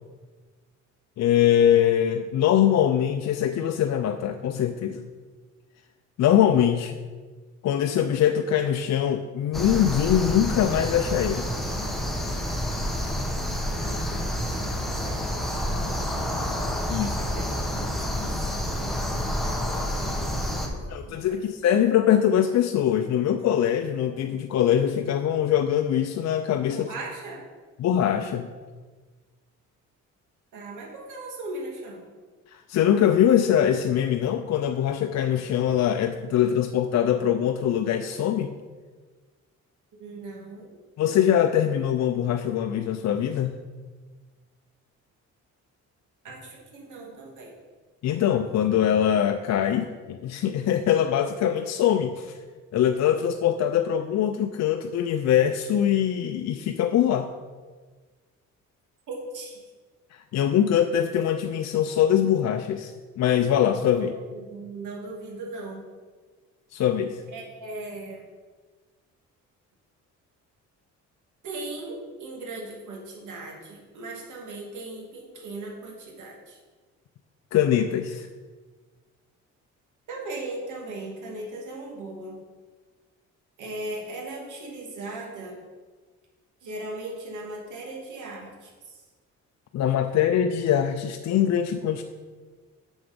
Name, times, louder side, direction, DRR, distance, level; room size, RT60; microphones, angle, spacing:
voice 1, 1.2-5.0 6.2-7.0 7.6-11.5 16.9-17.2 20.9-26.9 27.8-28.5 32.5-38.5 41.0-43.6 48.0-52.4 52.7-57.3 60.1-64.1 66.7-67.2 77.5-78.3 89.7-92.0, left 10 dB, 60° left, 6 dB, 0.6 m, -23 dB
Hilden night open field crickets light traffic, 9.5-20.7, equal, ahead, 1.5 m, -28 dB
voice 2, 13.7-14.7 15.0-16.2 17.0-21.5 26.7-27.4 30.5-32.0 40.0-40.7 46.2-47.5 59.1-59.6 63.9-65.8 67.3-68.2 71.4-76.6 80.1-82.4 83.6-85.6 86.6-89.0, right 2 dB, 80° right, -2 dB, 2.6 m, -39 dB
7.1 x 7.1 x 5.2 m, 1.4 s
cardioid pair, 90°, 30 cm